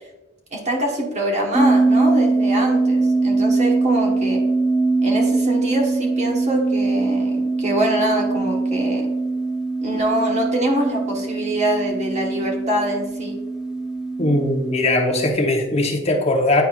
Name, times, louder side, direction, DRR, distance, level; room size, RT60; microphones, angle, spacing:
voice 1, 0.5-4.4 5.0-9.0 9.8-13.4, right 1 dB, 35° right, 0 dB, 1.2 m, -24 dB
sound 1, 1.5-15.3, right 3 dB, 5° right, 0.5 m, -22 dB
voice 2, 14.2-16.6, left 1 dB, 30° left, 1 dB, 0.9 m, -19 dB
9.3 x 4.3 x 2.4 m, 1.1 s
head